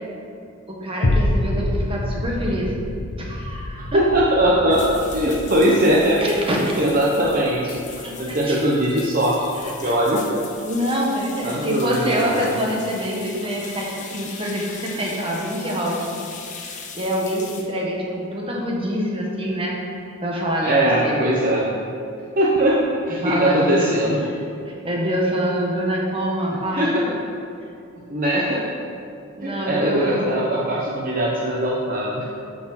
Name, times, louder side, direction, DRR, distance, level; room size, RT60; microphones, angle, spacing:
voice 1, 0.7-2.7 3.2-4.0 6.2-6.8 8.0-8.6 9.6-9.9 10.6-16.2 16.9-19.8 20.2-20.8 21.0-21.4 23.2-23.9 24.7-27.0 29.4-30.3, equal, 25° right, -2 dB, 1.5 m, -25 dB
sound 1, 1.0-9.6 10.1-10.2, left 1 dB, 70° left, 0.8 m, -28 dB
voice 2, 3.7-6.2 6.8-7.8 8.2-9.3 9.6-10.4 11.4-12.5 20.6-21.7 22.4-24.3 26.5-27.1 28.1-28.6 29.4-32.3, right 1 dB, 40° right, -4 dB, 0.9 m, -20 dB
sound 2, 4.7-17.6, left 5 dB, 35° left, 1.0 m, -39 dB
11.5 x 6.2 x 4.2 m, 2.5 s
head